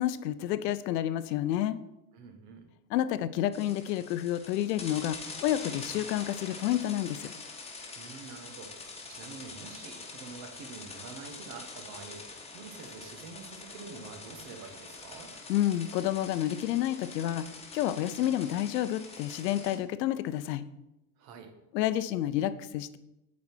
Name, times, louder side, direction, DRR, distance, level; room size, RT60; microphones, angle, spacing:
voice 1, 0.0-1.8 2.9-7.3 15.5-17.4 17.7-20.6 21.7-23.0, left 12 dB, 75° left, 13 dB, 0.7 m, -29 dB
voice 2, 2.1-2.7 7.9-15.3 21.2-21.5, right 4 dB, 55° right, 4 dB, 1.6 m, -47 dB
sound 1, 3.5-19.8, left 3 dB, 10° left, 1.3 m, -45 dB
8.5 x 4.2 x 4.5 m, 0.94 s
hypercardioid pair, 90°, 50 cm